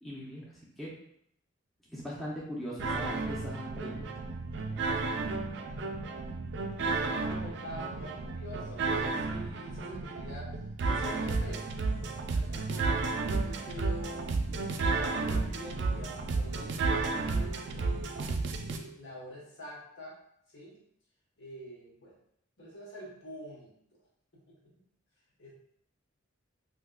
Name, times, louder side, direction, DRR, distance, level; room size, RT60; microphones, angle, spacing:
voice 1, 0.0-0.9 1.9-4.1, equal, ahead, -7 dB, 0.5 m, -40 dB
sound 1, 2.8-18.8, right 3 dB, 60° right, 0.3 m, -32 dB
voice 2, 6.9-10.6 10.8-11.7 12.0-14.7 14.9-16.8 17.3-20.2 20.5-20.8 21.4-22.2 22.6-23.7 24.3-24.8 25.4-25.5, equal, 65° left, -5 dB, 1.1 m, -46 dB
3.6 x 2.7 x 2.2 m, 0.71 s
head